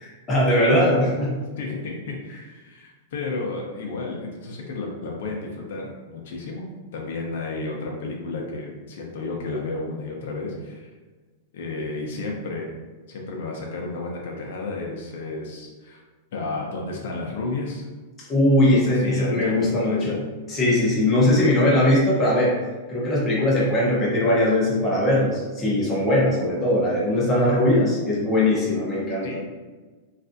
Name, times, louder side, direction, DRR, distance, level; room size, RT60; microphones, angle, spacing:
voice 1, 0.3-1.4 18.3-20.2 20.5-22.6 22.9-29.3, left 1 dB, 10° left, -6 dB, 0.7 m, -20 dB
voice 2, 1.6-6.6 6.9-10.9 11.5-12.7 13.1-16.0 16.3-17.9 18.5-20.2 29.2-29.4, left 3 dB, 60° left, -1 dB, 0.6 m, -32 dB
3.2 x 2.4 x 2.6 m, 1.3 s
supercardioid pair, 175°, 0 cm